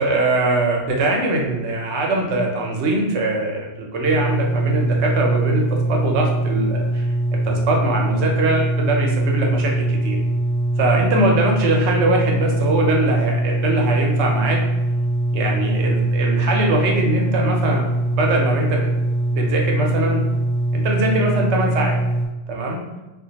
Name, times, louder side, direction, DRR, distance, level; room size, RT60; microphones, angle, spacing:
voice 1, 0.0-3.7 3.9-5.6 5.9-7.0 7.4-10.2 10.8-14.6 15.3-18.9 19.3-20.2 20.7-22.0 22.5-22.8, right 2 dB, 80° right, 0 dB, 0.9 m, -21 dB
sound 1, 4.0-22.3, right 1 dB, 65° left, 1.0 m, -22 dB
2.4 x 2.2 x 2.7 m, 1.1 s
omnidirectional pair, 1.1 m